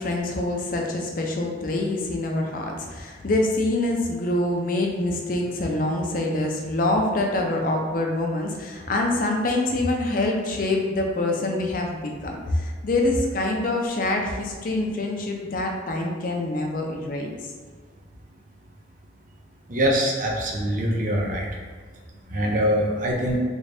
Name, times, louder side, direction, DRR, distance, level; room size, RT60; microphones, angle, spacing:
voice 1, 0.0-17.4, left 2 dB, 45° left, 1 dB, 0.5 m, -25 dB
voice 2, 19.7-21.5 22.3-23.4, equal, 45° right, -1 dB, 0.6 m, -23 dB
3.3 x 2.7 x 3.3 m, 1.5 s
head